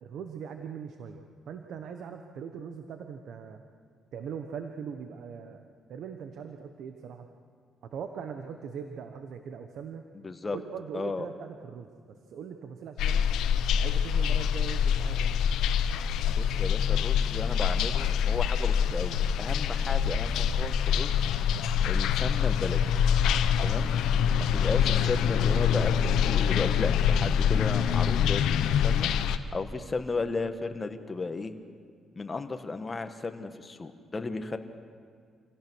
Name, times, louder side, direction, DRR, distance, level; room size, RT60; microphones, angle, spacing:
voice 1, 0.0-3.6 4.1-5.6 5.9-7.3 7.8-10.0 10.5-13.3 13.8-15.4, right 7 dB, 70° right, 6 dB, 1.2 m, -41 dB
voice 2, 10.2-10.6 10.9-11.3 16.3-21.3 21.8-22.8 23.6-23.9 24.4-29.1 29.5-31.5 32.1-34.6, left 3 dB, 30° left, 7 dB, 1.5 m, -34 dB
sound 1, 13.0-29.4, left 8 dB, 85° left, 0.9 m, -25 dB
26.5 x 16.5 x 6.3 m, 2.2 s
cardioid pair, 90°, 0 cm